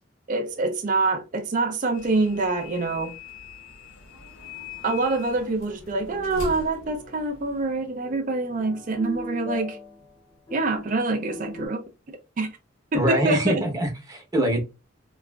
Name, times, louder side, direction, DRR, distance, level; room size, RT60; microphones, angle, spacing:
voice 1, 0.3-3.1 4.8-9.8 10.5-11.8 12.4-12.5 12.9-13.6, right 3 dB, 40° right, 0.4 m, -25 dB
sound 1, 1.9-7.8, left 4 dB, 80° left, 0.9 m, -41 dB
sound 2, 5.9-11.7, left 2 dB, 25° left, 0.7 m, -41 dB
voice 2, 12.9-14.6, right 1 dB, 20° right, 0.8 m, -24 dB
3.0 x 2.4 x 2.3 m
head